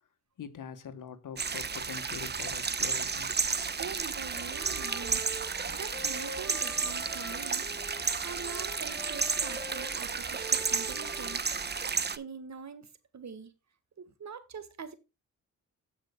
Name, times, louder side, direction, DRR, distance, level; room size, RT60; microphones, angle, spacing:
voice 1, 0.4-3.3, left 7 dB, 75° left, 1.5 m, -43 dB
sound 1, 1.4-12.2, right 5 dB, 30° right, 0.8 m, -32 dB
voice 2, 3.8-5.4 5.7-7.7 8.2-11.4 12.2-12.9 13.1-13.5 14.0-14.9, right 6 dB, 60° right, 1.6 m, -44 dB
Wind instrument woodwind instrument, 4.0-7.6 7.9-11.9, equal, 5° left, 5.7 m, -46 dB
sound 2, 5.1-11.7, left 2 dB, 20° left, 4.2 m, -53 dB
16.5 x 5.6 x 2.2 m
cardioid pair, 65°, 32 cm